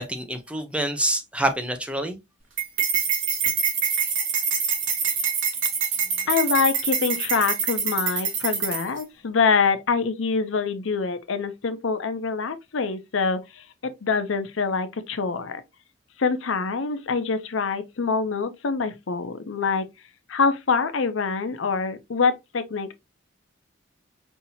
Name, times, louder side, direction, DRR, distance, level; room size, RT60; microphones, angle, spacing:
voice 1, 0.0-2.2, right 1 dB, 5° right, 0.6 m, -26 dB
sound 1, 2.6-9.0, right 6 dB, 70° right, 1.8 m, -25 dB
voice 2, 6.2-15.6 16.2-19.8 20.3-22.9, left 5 dB, 75° left, 0.6 m, -25 dB
5.5 x 2.7 x 2.8 m
head